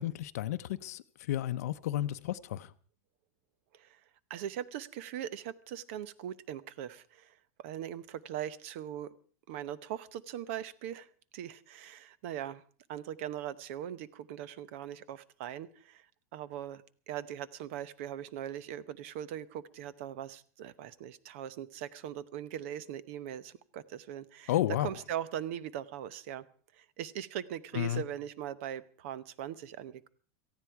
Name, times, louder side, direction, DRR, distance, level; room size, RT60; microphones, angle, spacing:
voice 1, 0.0-2.7 24.5-24.9 27.7-28.0, left 13 dB, 75° left, 0.7 m, -32 dB
voice 2, 4.3-9.1 9.5-12.6 12.9-16.0 16.3-24.5 24.8-26.4 26.7-30.1, right 10 dB, 50° right, 0.9 m, -40 dB
18.0 x 14.5 x 4.7 m
supercardioid pair, 175°, 9 cm